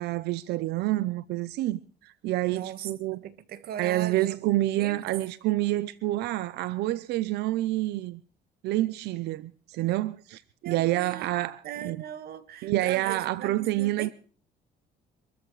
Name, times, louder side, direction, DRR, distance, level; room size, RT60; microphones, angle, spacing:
voice 1, 0.0-3.2 3.8-8.2 8.6-12.0 12.6-14.1, right 16 dB, 80° right, 0.7 m, -28 dB
voice 2, 2.5-5.1 10.6-11.3 11.6-14.1, right 10 dB, 65° right, 1.6 m, -39 dB
25.5 x 14.0 x 3.2 m
cardioid pair, 110°, 17 cm